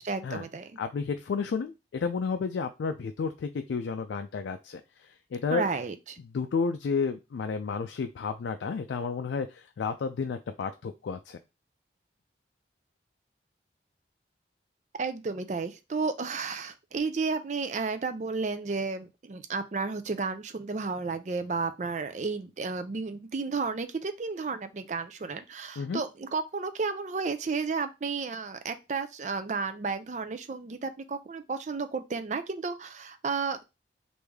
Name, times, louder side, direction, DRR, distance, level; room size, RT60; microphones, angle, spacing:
voice 1, 0.0-0.7 5.5-6.2 15.0-33.6, right 4 dB, 40° right, 10 dB, 0.4 m, -32 dB
voice 2, 0.8-5.7 6.3-11.4 25.8-26.0, left 5 dB, 85° left, 6 dB, 0.3 m, -31 dB
3.2 x 2.6 x 3.4 m, 0.26 s
head